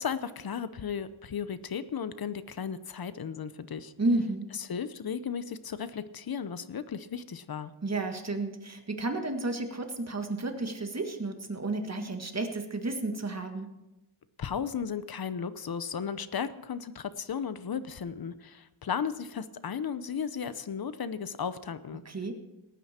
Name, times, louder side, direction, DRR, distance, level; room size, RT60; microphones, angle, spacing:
voice 1, 0.0-3.9 4.5-7.7 14.4-22.0, left 7 dB, 45° left, 14 dB, 0.8 m, -35 dB
voice 2, 4.0-4.5 7.8-13.7 22.0-22.3, right 2 dB, 30° right, 5 dB, 1.7 m, -32 dB
18.5 x 9.4 x 4.3 m, 0.98 s
wide cardioid pair, 105°, 49 cm